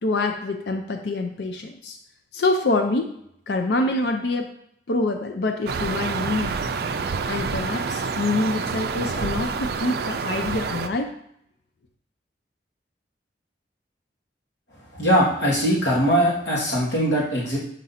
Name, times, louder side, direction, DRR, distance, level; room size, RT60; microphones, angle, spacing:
voice 1, 0.0-2.0 2.3-3.1 3.5-4.5 4.9-6.7 7.2-11.1, left 2 dB, 65° left, 5 dB, 0.5 m, -26 dB
sound 1, 5.7-10.9, right 5 dB, 55° right, 0.4 m, -28 dB
voice 2, 14.9-17.6, equal, 80° left, -6 dB, 1.5 m, -21 dB
7.4 x 2.6 x 5.6 m, 0.73 s
head